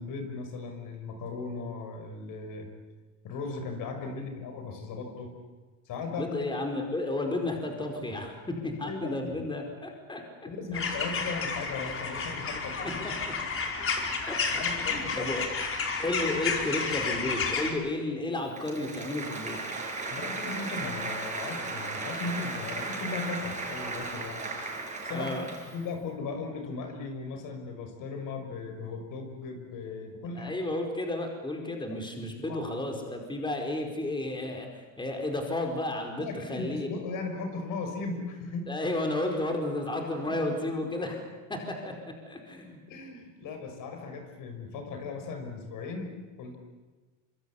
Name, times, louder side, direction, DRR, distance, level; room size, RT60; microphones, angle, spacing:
voice 1, 0.0-2.7 3.2-5.3 5.9-6.3 8.8-9.3 10.4-13.0 14.5-15.5 20.1-24.4 25.0-30.5 32.4-32.8 36.2-38.7 40.2-40.7 41.5-41.6 42.9-46.6, left 4 dB, 55° left, 5 dB, 5.9 m, -37 dB
voice 2, 6.2-10.2 10.7-10.8 13.0-13.3 14.3-15.4 16.0-19.6 25.1-25.5 30.3-36.9 38.7-41.2 41.5-42.8, left 2 dB, 10° left, 2 dB, 4.9 m, -32 dB
sound 1, 10.7-17.7, left 4 dB, 35° left, 4.9 m, -31 dB
Applause, 18.5-25.9, right 3 dB, 20° right, 6.3 m, -36 dB
25.5 x 25.5 x 8.6 m, 1.3 s
cardioid pair, 120°, 38 cm